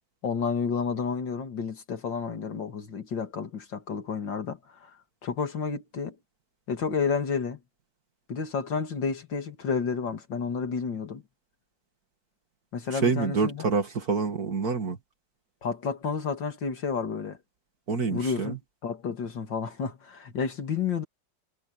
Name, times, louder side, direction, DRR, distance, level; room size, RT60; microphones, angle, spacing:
voice 1, 0.2-4.9 5.2-6.2 6.7-7.6 8.3-11.2 12.7-13.7 15.6-17.4 18.1-18.6 18.8-21.0, left 5 dB, 85° left, 2.9 m, -30 dB
voice 2, 12.9-15.0 17.9-18.6, right 4 dB, 55° right, 2.5 m, -27 dB
omnidirectional pair, 1.9 m